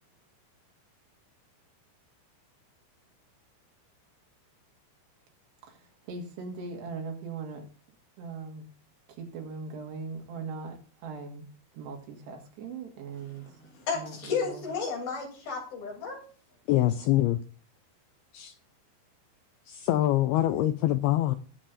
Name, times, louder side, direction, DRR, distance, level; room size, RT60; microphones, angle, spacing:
voice 1, 6.1-7.7 8.2-8.6 9.2-11.5 11.7-13.5 14.0-14.6, right 4 dB, 70° right, 3.8 m, -39 dB
voice 2, 13.1-16.2, left 5 dB, 55° left, 4.8 m, -33 dB
voice 3, 16.7-17.4 18.3-18.5 19.7-21.4, left 14 dB, 85° left, 2.2 m, -24 dB
20.0 x 7.3 x 2.6 m
omnidirectional pair, 5.2 m